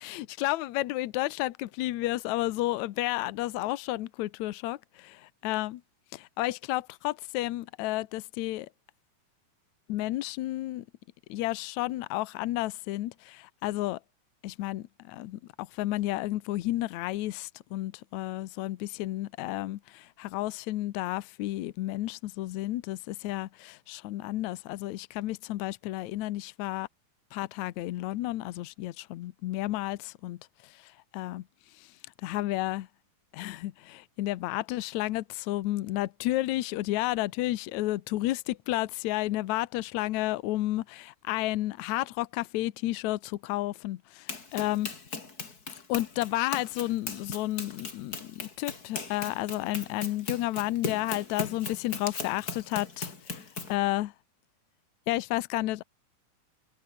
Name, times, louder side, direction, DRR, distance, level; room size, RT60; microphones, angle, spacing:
voice 1, 0.0-5.8 6.1-8.7 9.9-10.9 11.3-14.0 14.4-26.9 27.3-30.4 30.6-31.4 31.8-31.9 32.2-32.9 33.3-44.9 45.9-53.4 53.7-54.1 55.1-55.8, left 16 dB, 75° left, 2.1 m, -32 dB
Run, 44.3-53.8, left 4 dB, 30° left, 3.3 m, -38 dB
omnidirectional pair, 3.7 m